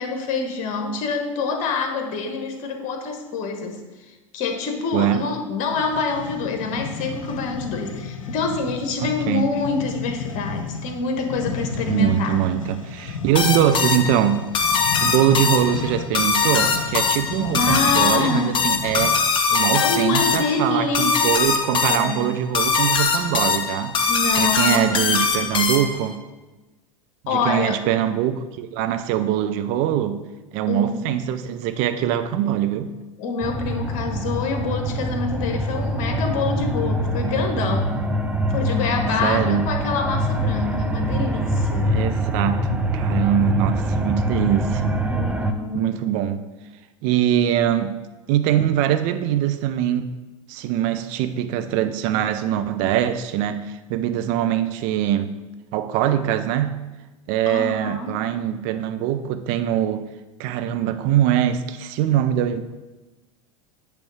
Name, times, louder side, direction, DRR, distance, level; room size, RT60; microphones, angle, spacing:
voice 1, 0.0-3.8 4.1-12.4 17.2-18.6 19.8-21.2 21.9-22.2 24.1-25.1 27.3-27.8 30.7-31.0 33.2-37.9 38.5-41.9 45.1-45.9 57.5-58.2, left 4 dB, 45° left, 4 dB, 1.4 m, -26 dB
sound 1, 5.7-19.4, left 5 dB, 75° left, 0.7 m, -33 dB
voice 2, 9.0-9.5 11.9-14.5 15.0-19.2 19.5-24.1 24.4-26.2 27.3-30.2 30.5-32.9 39.2-39.7 41.9-45.0 45.7-46.4 47.0-48.0 48.3-50.2 50.5-55.3 55.7-56.8 57.3-60.1 60.4-62.6, right 11 dB, 50° right, 9 dB, 0.7 m, -22 dB
sound 2, 13.4-26.1, left 5 dB, 30° left, 0.9 m, -22 dB
sound 3, 33.4-45.5, equal, 10° right, 0.6 m, -24 dB
8.9 x 3.5 x 6.3 m, 1.1 s
figure-of-eight pair, 80°, 17 cm